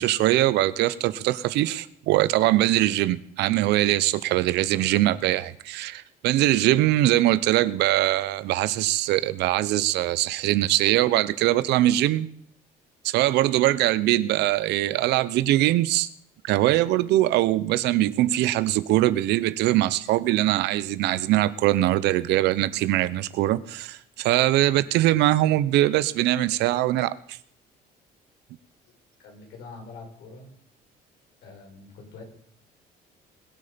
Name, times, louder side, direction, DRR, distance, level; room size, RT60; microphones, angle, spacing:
voice 1, 0.0-12.3 13.0-16.1 16.4-27.2, right 15 dB, 85° right, 0.8 m, -22 dB
voice 2, 29.2-30.5 31.4-32.2, left 4 dB, 75° left, 5.7 m, -45 dB
21.0 x 8.6 x 5.2 m
cardioid pair, 110°, 17 cm